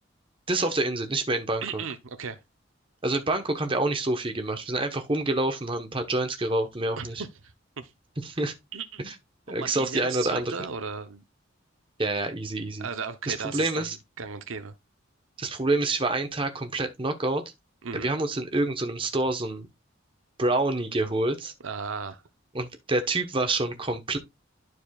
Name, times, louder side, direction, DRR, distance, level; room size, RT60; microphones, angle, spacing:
voice 1, 0.5-1.8 3.0-7.2 8.2-8.5 9.0-9.1 9.5-10.5 12.0-12.9 13.3-13.9 15.4-17.4 17.9-19.7 20.4-21.5 22.5-24.2, right 2 dB, 25° right, 1.1 m, -27 dB
voice 2, 1.6-2.4 7.0-7.9 8.7-9.0 9.5-11.2 12.8-13.9 14.2-14.7 17.8-18.1 21.6-22.2, right 5 dB, 85° right, 0.8 m, -36 dB
11.5 x 4.7 x 2.4 m
head